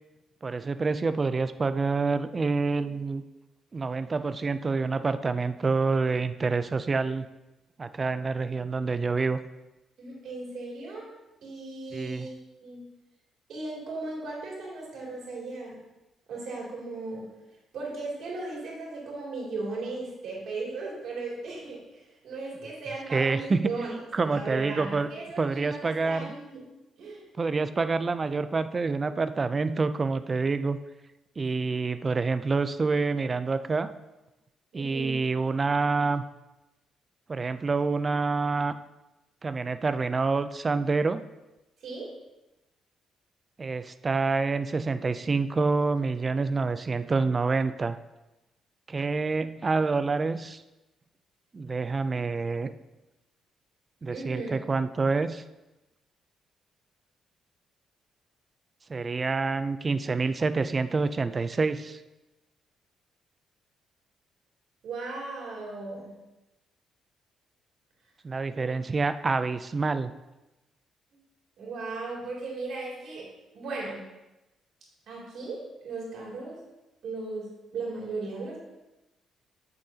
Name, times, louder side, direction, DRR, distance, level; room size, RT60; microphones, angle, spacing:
voice 1, 0.4-3.2 3.7-7.3 7.8-9.4 11.9-12.3 23.1-25.1 25.4-26.3 27.4-30.8 31.4-33.9 34.7-36.2 37.3-38.8 39.4-41.2 43.6-48.0 48.9-50.6 51.5-52.7 54.0-55.4 58.9-62.0 68.2-70.1, right 4 dB, 30° right, 12 dB, 0.4 m, -27 dB
voice 2, 4.8-5.1 10.0-11.1 11.4-12.3 12.6-12.9 13.5-15.8 16.3-17.3 17.7-26.6 27.0-27.2 31.6-31.7 34.7-35.3 41.8-42.1 54.1-54.7 64.8-66.1 68.5-68.7 71.6-73.3 73.5-74.0 75.1-76.6 77.0-78.6, right 3 dB, 70° right, -3 dB, 2.7 m, -37 dB
8.4 x 6.5 x 2.8 m, 1.0 s
cardioid pair, 90°, 0 cm